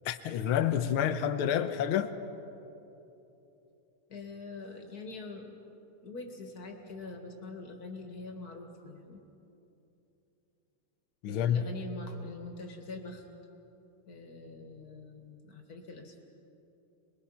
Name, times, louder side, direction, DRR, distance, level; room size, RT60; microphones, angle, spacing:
voice 1, 0.1-2.1 11.2-11.7, left 9 dB, 80° left, 1.7 m, -28 dB
voice 2, 4.1-5.6 6.0-9.2 11.3-13.3 14.1-16.2, left 3 dB, 45° left, 2.4 m, -44 dB
27.5 x 21.5 x 5.8 m
omnidirectional pair, 2.3 m